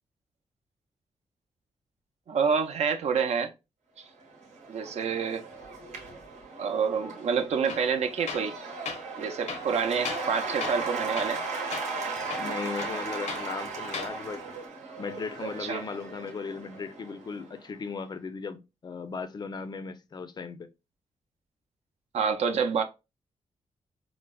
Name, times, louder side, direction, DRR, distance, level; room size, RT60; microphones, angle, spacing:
voice 1, 2.3-3.5 4.0-4.1 4.7-5.4 6.6-8.5 9.2-11.4 15.6-15.8 22.1-22.8, right 6 dB, 70° right, 0.5 m, -27 dB
Cheering / Applause / Crowd, 4.2-17.6, right 4 dB, 90° right, 0.9 m, -37 dB
Tools, 7.7-7.9 8.3-8.5 8.8-9.0 9.5-10.3 10.6-10.9 11.2-11.4 11.7-11.9 12.3-13.5 13.8-14.1, left 5 dB, 80° left, 0.7 m, -37 dB
voice 2, 12.4-14.4 15.0-20.7, left 5 dB, 35° left, 0.4 m, -37 dB
4.5 x 2.0 x 2.2 m
cardioid pair, 100°, 12 cm